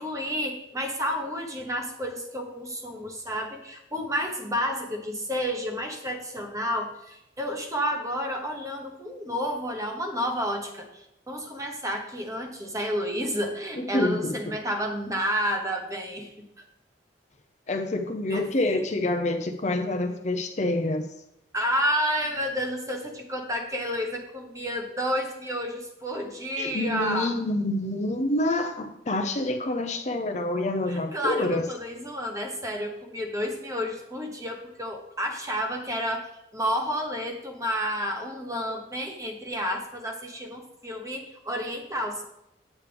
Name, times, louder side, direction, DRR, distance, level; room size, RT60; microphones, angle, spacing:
voice 1, 0.0-16.3 18.3-18.8 21.5-27.3 30.9-42.3, equal, 20° right, 3 dB, 1.1 m, -30 dB
voice 2, 13.8-14.3 17.7-21.1 26.6-31.6, left 2 dB, 40° left, 6 dB, 0.7 m, -27 dB
8.3 x 8.3 x 3.4 m, 0.84 s
head